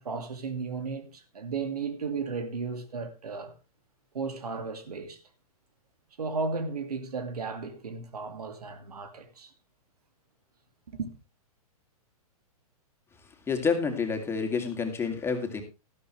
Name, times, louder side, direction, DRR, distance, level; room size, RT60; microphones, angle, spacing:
voice 1, 0.0-3.5 4.1-5.2 6.2-9.5 10.9-11.1, right 4 dB, 85° right, 2.3 m, -34 dB
voice 2, 13.5-15.6, left 5 dB, 15° left, 2.6 m, -28 dB
13.0 x 12.5 x 3.3 m
hypercardioid pair, 130°, 19 cm